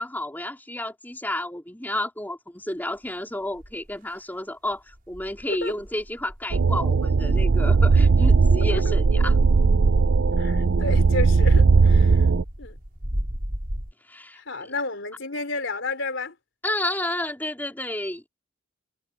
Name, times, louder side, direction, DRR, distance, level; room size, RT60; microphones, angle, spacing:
voice 1, 0.0-9.4 14.1-14.7 16.6-18.3, left 1 dB, 10° left, 3.8 m, -31 dB
sound 1, 3.0-3.1 3.5-4.2 4.6-13.9, equal, 45° right, 5.5 m, -38 dB
voice 2, 5.5-5.8 8.7-8.8 10.3-12.3 12.6-12.8 14.3-16.3, left 3 dB, 65° left, 4.2 m, -31 dB
sound 2, 6.5-12.4, right 4 dB, 65° right, 0.5 m, -18 dB
head